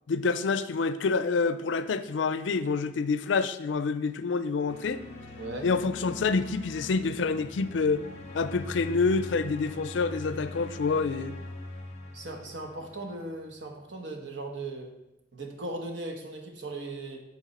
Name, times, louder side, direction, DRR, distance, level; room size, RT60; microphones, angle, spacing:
voice 1, 0.1-5.0 5.6-8.0 8.3-11.4, left 4 dB, 80° left, 12 dB, 0.4 m, -27 dB
sound 1, 4.7-13.5, left 2 dB, 40° left, 1.2 m, -42 dB
voice 2, 5.4-5.7 12.1-14.9 15.3-17.2, right 2 dB, 85° right, 3 dB, 1.1 m, -38 dB
8.3 x 4.5 x 4.2 m, 0.91 s
head